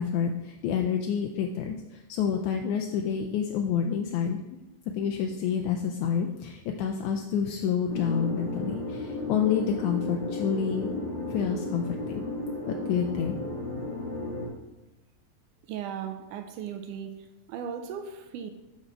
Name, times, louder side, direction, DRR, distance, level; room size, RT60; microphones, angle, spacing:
voice 1, 0.0-4.4 4.9-10.9 11.3-12.2 12.7-13.4, left 7 dB, 80° left, 3 dB, 1.8 m, -28 dB
sound 1, 7.9-14.5, left 2 dB, 35° left, 0.4 m, -34 dB
voice 2, 15.7-17.2 17.5-18.5, right 8 dB, 80° right, 7 dB, 1.9 m, -37 dB
8.3 x 4.1 x 6.1 m, 1.0 s
omnidirectional pair, 3.9 m